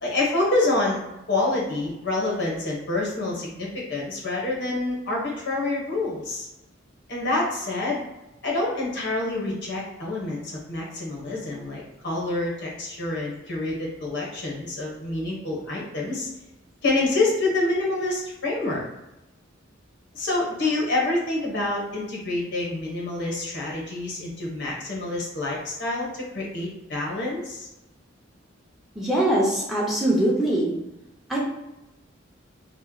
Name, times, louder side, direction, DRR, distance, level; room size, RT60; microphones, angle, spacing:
voice 1, 0.0-1.0 1.3-6.5 7.1-8.0 8.4-16.3 16.8-18.8 20.1-27.7, left 2 dB, 60° left, -3 dB, 1.1 m, -27 dB
voice 2, 29.0-30.7 31.3-31.4, right 1 dB, ahead, -6 dB, 0.7 m, -22 dB
3.0 x 2.0 x 3.8 m, 0.95 s
head